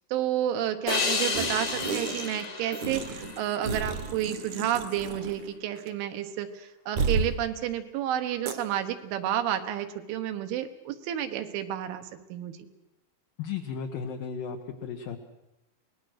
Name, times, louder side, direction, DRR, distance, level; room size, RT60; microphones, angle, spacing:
voice 1, 0.1-12.6, right 11 dB, 80° right, 8 dB, 3.7 m, -31 dB
sound 1, 0.9-4.2, left 4 dB, 45° left, 1.3 m, -31 dB
sound 2, 1.3-2.4 2.7-5.5 5.8-5.9 7.0-7.3 8.5-8.6, right 4 dB, 60° right, 2.1 m, -32 dB
voice 2, 13.4-15.2, left 6 dB, 70° left, 3 dB, 2.3 m, -35 dB
25.0 x 19.5 x 6.4 m, 0.90 s
omnidirectional pair, 5.5 m